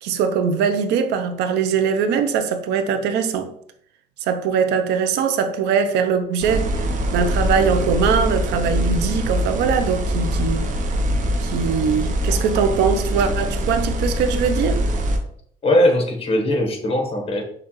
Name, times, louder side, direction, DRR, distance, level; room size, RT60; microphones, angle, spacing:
voice 1, 0.0-3.5 4.2-10.7 11.4-14.8, right 6 dB, 85° right, 0.6 m, -21 dB
sound 1, 6.4-15.2, equal, 50° right, 0.8 m, -23 dB
voice 2, 15.6-17.4, left 1 dB, 35° left, 1.3 m, -19 dB
6.7 x 2.4 x 3.1 m
cardioid pair, 110°, 17 cm